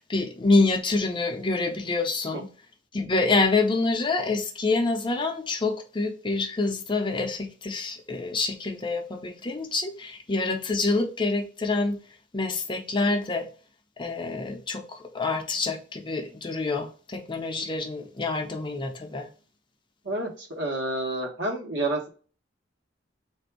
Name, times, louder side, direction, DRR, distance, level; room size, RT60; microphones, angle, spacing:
voice 1, 0.0-2.5 2.9-12.0 12.3-13.5 14.0-19.3, left 3 dB, 25° left, 0.6 m, -26 dB
voice 2, 20.0-22.1, right 2 dB, 65° right, 1.2 m, -29 dB
3.4 x 2.6 x 4.6 m
head